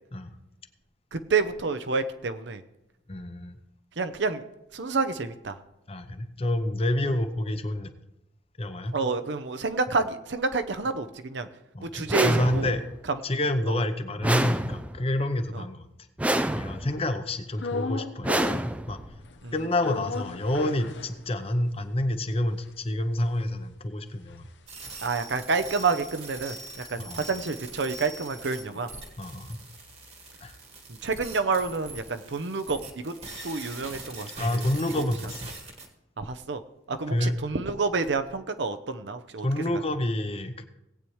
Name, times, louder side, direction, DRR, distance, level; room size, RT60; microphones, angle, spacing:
voice 1, 1.1-2.6 4.0-4.4 4.7-5.6 8.9-11.5 11.8-12.7 13.7-13.8 15.5-15.6 19.4-19.5 25.0-26.6 26.9-28.9 30.9-33.1 33.4-34.6 35.0-35.1 36.2-36.6 36.9-39.5, right 4 dB, 65° right, 10 dB, 0.7 m, -29 dB
voice 2, 3.1-3.6 5.9-7.9 8.6-9.0 11.7-12.8 13.2-15.9 16.5-18.6 18.9-19.0 19.5-24.5 26.8-27.2 29.2-29.6 30.4-30.5 34.4-35.5 37.1-37.3 39.4-40.6, left 1 dB, 30° left, 9 dB, 0.7 m, -28 dB
sound 1, 12.1-13.0 14.2-15.1 16.2-17.0 18.2-19.1, right 1 dB, 5° right, 0.3 m, -27 dB
sound 2, 17.6-18.8 19.1-21.7 22.1-22.2 22.3-26.8 27.2-31.2, left 4 dB, 70° left, 0.7 m, -38 dB
sound 3, 24.7-35.9, right 3 dB, 30° right, 1.4 m, -43 dB
18.0 x 8.6 x 3.2 m, 0.89 s
head